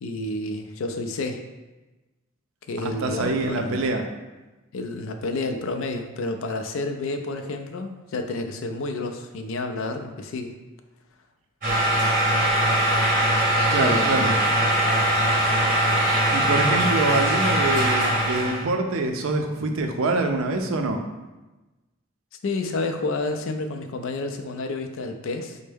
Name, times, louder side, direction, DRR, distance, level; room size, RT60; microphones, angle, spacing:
voice 1, 0.0-1.4 2.7-3.8 4.7-10.5 13.8-14.3 22.4-25.6, left 2 dB, 70° left, 6 dB, 0.3 m, -30 dB
voice 2, 2.8-4.0 13.7-14.6 16.3-21.0, right 2 dB, 75° right, 4 dB, 0.4 m, -25 dB
sound 1, 11.6-18.6, right 1 dB, 40° right, 1.0 m, -21 dB
4.3 x 2.1 x 3.3 m, 1.1 s
head